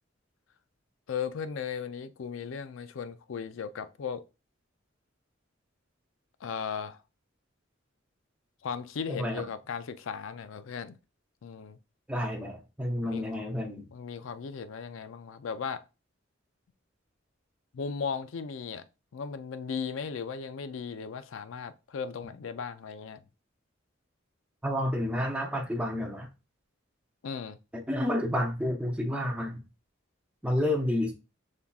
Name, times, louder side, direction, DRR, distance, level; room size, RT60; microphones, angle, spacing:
voice 1, 1.1-4.2 6.4-7.0 8.6-11.0 11.4-11.8 13.0-13.3 13.9-15.8 17.7-18.8 19.1-23.2 27.2-27.6, left 6 dB, 75° left, 0.4 m, -36 dB
voice 2, 9.1-9.4 12.1-13.9 24.6-26.3 27.9-29.6 30.4-31.1, left 1 dB, 5° right, 0.7 m, -30 dB
5.6 x 3.5 x 2.3 m
head